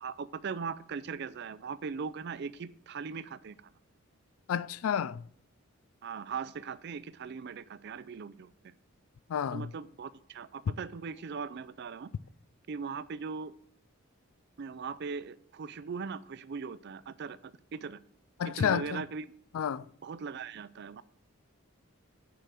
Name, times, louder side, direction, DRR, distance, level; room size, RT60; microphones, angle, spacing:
voice 1, 0.0-3.7 6.0-8.7 9.5-12.1 12.7-13.5 14.6-18.0 18.4-19.3 20.0-21.0, right 5 dB, 50° right, 0.4 m, -39 dB
voice 2, 4.5-5.2 9.3-9.7 18.4-19.0 19.5-19.8, left 8 dB, 75° left, 0.3 m, -30 dB
9.1 x 5.0 x 6.0 m
head